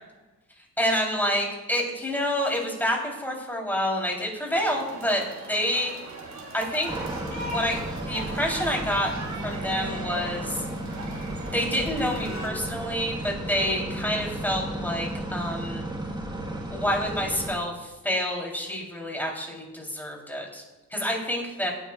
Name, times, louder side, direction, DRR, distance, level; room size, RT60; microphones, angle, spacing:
voice 1, 0.8-5.2 5.5-5.9 6.5-7.0 7.4-7.8 8.1-9.1 9.4-10.6 11.5-15.8 16.7-20.6 20.9-21.7, equal, 5° left, -1 dB, 3.5 m, -28 dB
sound 1, 4.5-12.5, right 2 dB, 60° right, 3.1 m, -38 dB
sound 2, 6.9-17.6, right 1 dB, 15° right, 1.5 m, -34 dB
17.5 x 9.1 x 2.4 m, 1.2 s
cardioid pair, 90°, 33 cm